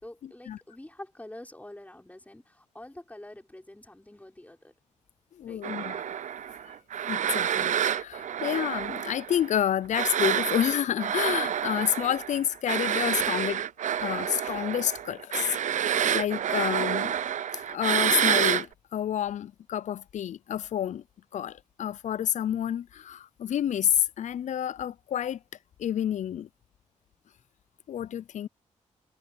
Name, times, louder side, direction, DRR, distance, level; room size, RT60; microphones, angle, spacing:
voice 1, 0.0-4.7 5.5-5.7, left 1 dB, 10° left, 5.2 m, -46 dB
voice 2, 5.4-6.1 7.1-13.6 14.0-15.6 15.8-17.2 17.5-21.0 21.3-25.4 25.8-26.5 27.9-28.5, left 10 dB, 70° left, 0.4 m, -29 dB
sound 1, 5.6-9.6 9.9-18.6, right 9 dB, 75° right, 0.6 m, -28 dB
cardioid pair, 75°, 13 cm